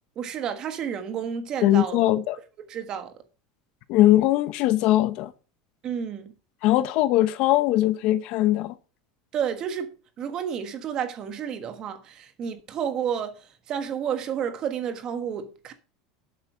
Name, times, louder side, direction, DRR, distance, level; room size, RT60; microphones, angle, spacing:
voice 1, 0.2-2.0 2.7-3.1 5.8-6.3 9.3-9.9 10.2-13.3 13.7-15.7, right 8 dB, 35° right, 1.4 m, -30 dB
voice 2, 1.6-2.4 3.9-5.3 6.6-8.7, left 14 dB, 50° left, 0.9 m, -20 dB
11.5 x 8.0 x 5.0 m
supercardioid pair, 155°, 2 cm